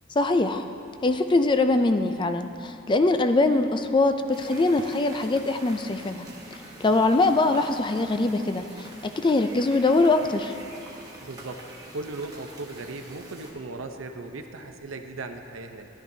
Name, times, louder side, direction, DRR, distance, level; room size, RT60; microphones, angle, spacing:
voice 1, 0.2-0.7 1.0-6.3 6.8-10.5, left 2 dB, 25° left, 8 dB, 0.4 m, -22 dB
sound 1, 4.3-13.5, right 1 dB, 20° right, 1.3 m, -45 dB
voice 2, 11.2-11.6 11.9-15.9, right 3 dB, 90° right, 6 dB, 0.7 m, -37 dB
13.5 x 11.5 x 2.7 m, 2.7 s
head